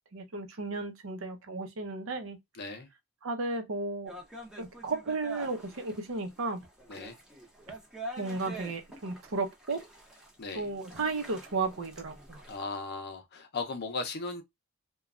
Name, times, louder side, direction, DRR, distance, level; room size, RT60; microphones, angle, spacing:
voice 1, 0.1-2.4 3.2-4.1 4.6-6.7 8.2-9.8 10.5-12.4, right 3 dB, 65° right, 0.6 m, -34 dB
voice 2, 2.5-2.9 6.9-7.2 10.4-10.7 12.5-14.4, left 3 dB, 50° left, 0.6 m, -37 dB
sound 1, 4.1-12.6, right 1 dB, 5° right, 0.7 m, -46 dB
3.1 x 2.2 x 2.3 m
head